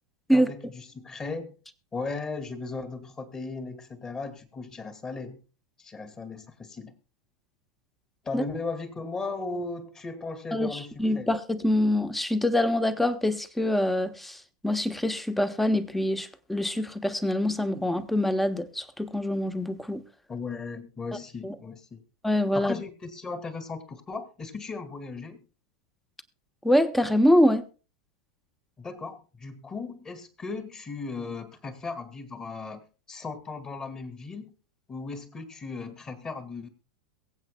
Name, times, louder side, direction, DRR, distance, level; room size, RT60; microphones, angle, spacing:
voice 1, 0.3-1.5 1.9-5.4 5.8-7.0 8.2-11.3 20.3-22.0 22.5-25.4 28.8-34.5 34.9-36.7, left 4 dB, 20° left, 2.4 m, -37 dB
voice 2, 10.5-20.0 21.4-21.5 22.2-22.7 26.6-27.6, left 1 dB, 5° left, 1.2 m, -25 dB
22.5 x 8.2 x 2.2 m
hypercardioid pair, 100°, 3 cm